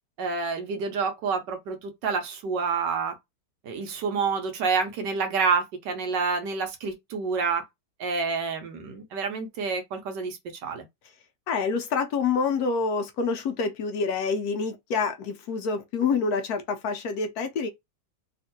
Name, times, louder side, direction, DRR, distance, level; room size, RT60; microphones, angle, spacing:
voice 1, 0.2-3.2 3.6-7.6 8.0-10.9, right 5 dB, 80° right, 1.5 m, -28 dB
voice 2, 11.5-17.7, left 5 dB, 70° left, 1.1 m, -27 dB
3.5 x 2.5 x 2.7 m
omnidirectional pair, 1.9 m